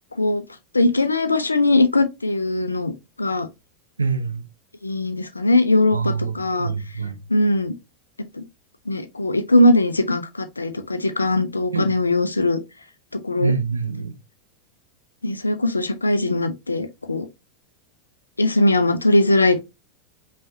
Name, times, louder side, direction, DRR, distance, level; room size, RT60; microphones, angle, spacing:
voice 1, 0.7-2.9 3.2-3.5 4.8-6.7 7.3-7.7 8.4-8.5 8.9-12.6 13.1-13.5 15.2-17.3 18.4-19.6, left 2 dB, 85° left, 0.7 m, -20 dB
voice 2, 4.0-4.4 5.9-7.2 11.7-11.9 13.4-14.1, right 5 dB, 80° right, 0.8 m, -25 dB
5.4 x 3.3 x 2.7 m
figure-of-eight pair, 85°, 0 cm